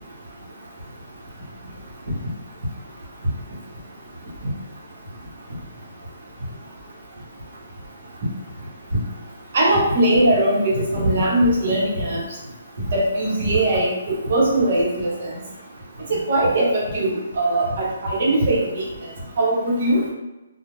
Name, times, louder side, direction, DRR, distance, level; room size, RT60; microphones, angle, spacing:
voice 1, 9.5-12.2 12.9-15.3 16.1-18.8 19.4-20.0, right 1 dB, 45° right, -4 dB, 0.9 m, -20 dB
2.4 x 2.1 x 3.1 m, 1.0 s
hypercardioid pair, 170°, 0 cm